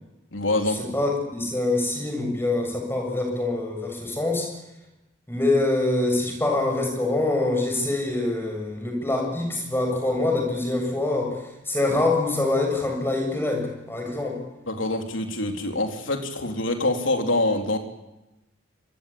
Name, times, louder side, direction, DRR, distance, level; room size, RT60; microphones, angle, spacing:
voice 1, 0.3-0.8 14.7-17.8, left 2 dB, 75° left, 5 dB, 3.8 m, -25 dB
voice 2, 0.9-4.5 5.3-11.4 11.7-14.4, left 2 dB, 10° left, 2 dB, 7.3 m, -25 dB
26.0 x 21.5 x 8.7 m, 0.97 s
head